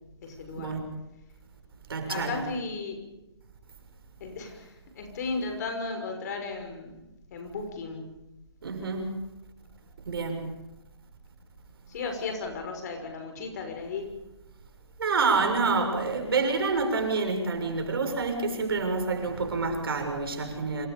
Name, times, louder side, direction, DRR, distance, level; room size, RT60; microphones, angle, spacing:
voice 1, 0.2-0.8 2.1-3.0 4.2-7.0 7.3-8.1 11.9-14.1, left 4 dB, 40° left, 5.9 m, -35 dB
voice 2, 1.9-2.4 8.6-9.2 10.1-10.5 15.0-20.9, right 4 dB, 60° right, 6.6 m, -28 dB
27.0 x 26.5 x 5.2 m
hypercardioid pair, 150°, 14 cm